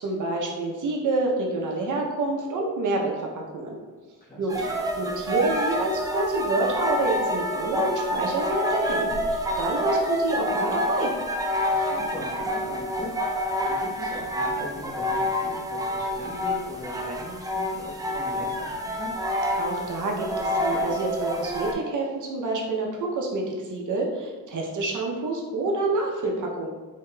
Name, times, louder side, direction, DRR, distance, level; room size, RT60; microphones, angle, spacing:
voice 1, 0.0-3.8 4.4-11.1 19.6-26.7, right 2 dB, 55° right, -1 dB, 0.7 m, -28 dB
voice 2, 4.2-4.7 11.6-13.4 13.8-19.1, left 1 dB, 25° left, -6 dB, 1.1 m, -39 dB
sound 1, 4.5-21.7, left 1 dB, 10° right, 0.3 m, -28 dB
4.6 x 2.8 x 2.2 m, 1.3 s
cardioid pair, 115°, 36 cm